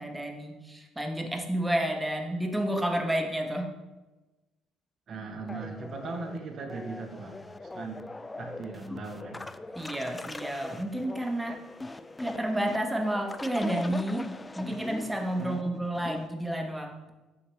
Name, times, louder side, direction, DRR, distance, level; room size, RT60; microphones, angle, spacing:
voice 1, 0.0-3.7 9.7-11.6 12.2-14.3 14.5-17.1, right 1 dB, 10° right, 3 dB, 1.0 m, -30 dB
voice 2, 5.1-7.4 7.7-8.1 8.4-9.4 10.7-10.8 15.4-15.7, right 3 dB, 50° right, 4 dB, 1.1 m, -38 dB
sound 1, 5.5-16.3, left 2 dB, 15° left, 0.3 m, -41 dB
6.0 x 5.7 x 3.3 m, 1.1 s
supercardioid pair, 75°, 0 cm